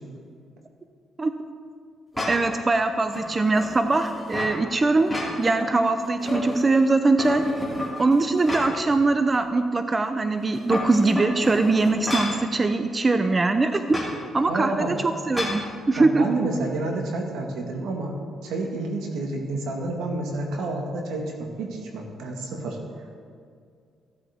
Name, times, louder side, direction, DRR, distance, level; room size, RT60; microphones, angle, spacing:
sound 1, 2.1-2.6 3.1-4.6 5.0-5.7 6.0-6.8 7.2-8.9 9.3-9.4 10.4-12.4 13.9-14.1 15.3-15.6, left 1 dB, ahead, 2.8 m, -30 dB
voice 1, 2.3-5.1 5.4-7.4 8.0-14.0 14.3-14.9 15.3-15.6 15.9-16.2, right 3 dB, 25° right, 8 dB, 0.5 m, -22 dB
voice 2, 14.5-14.9 16.0-18.2 18.4-22.8, right 2 dB, 85° right, 1 dB, 1.7 m, -29 dB
15.0 x 8.3 x 3.6 m, 2.2 s
cardioid pair, 90°, 0 cm